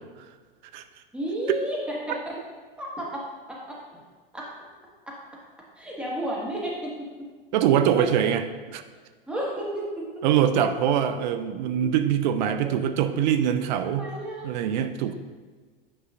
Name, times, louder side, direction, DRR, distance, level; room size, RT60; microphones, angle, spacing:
voice 1, 1.1-2.4 2.8-4.0 4.3-4.5 5.0-5.2 5.7-6.9 8.0-8.1 9.3-10.3 11.8-11.9 12.6-12.7 13.8-14.5, equal, 5° right, -5 dB, 1.7 m, -32 dB
voice 2, 7.5-8.4 8.7-8.8 10.2-14.1 14.4-15.1, right 9 dB, 50° right, 9 dB, 0.5 m, -23 dB
8.7 x 5.4 x 2.6 m, 1.4 s
hypercardioid pair, 100°, 29 cm